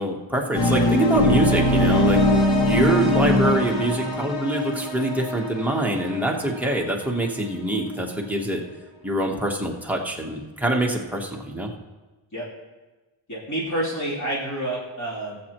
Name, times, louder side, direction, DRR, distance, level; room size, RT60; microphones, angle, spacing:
voice 1, 0.0-2.2 2.6-8.6 9.0-11.7, right 1 dB, 5° right, -1 dB, 1.0 m, -24 dB
sound 1, 0.5-7.4, left 1 dB, 55° left, 1.6 m, -22 dB
voice 2, 13.3-15.4, right 1 dB, 40° left, -8 dB, 3.1 m, -28 dB
19.0 x 7.6 x 3.0 m, 1.2 s
wide cardioid pair, 175°, 47 cm